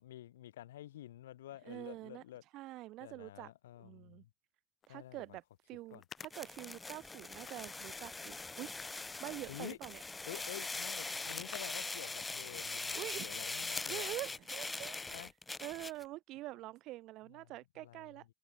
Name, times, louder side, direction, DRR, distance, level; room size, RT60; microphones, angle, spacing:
voice 1, 0.0-2.4 3.0-4.3 4.9-5.2 5.9-6.0 9.5-9.8 10.3-14.1 15.0-15.3 17.3-17.5 17.8-18.1, left 13 dB, 80° left, 2.1 m, -49 dB
voice 2, 1.6-2.2 2.5-3.5 3.8-4.2 4.9-8.7 9.2-10.0 12.9-13.4 13.9-15.3 15.6-18.2, right 17 dB, 55° right, 2.5 m, -46 dB
sound 1, 4.8-4.9 5.9-7.1 7.4-8.0 8.6-9.7 10.3-10.4 10.7-10.8 11.3-11.7 12.0-12.2 12.5-13.0, left 9 dB, 40° left, 0.9 m, -53 dB
sound 2, 6.2-16.0, left 3 dB, 15° left, 0.4 m, -42 dB
hypercardioid pair, 70°, 0 cm